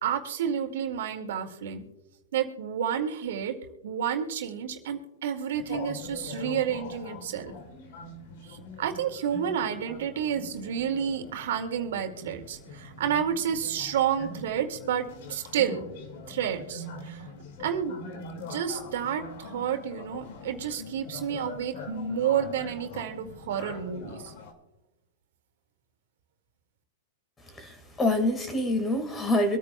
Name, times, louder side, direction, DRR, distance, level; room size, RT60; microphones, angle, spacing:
voice 1, 0.0-1.9 2.3-3.6 3.8-7.5 8.4-15.8 16.3-17.3 17.6-18.0 18.4-24.3, right 8 dB, 70° right, 4 dB, 2.2 m, -30 dB
sound 1, 5.5-24.5, left 3 dB, 60° left, 2.1 m, -43 dB
voice 2, 27.6-29.6, left 1 dB, 15° left, 7 dB, 1.8 m, -26 dB
24.5 x 9.4 x 2.3 m, 1.0 s
hypercardioid pair, 135°, 0 cm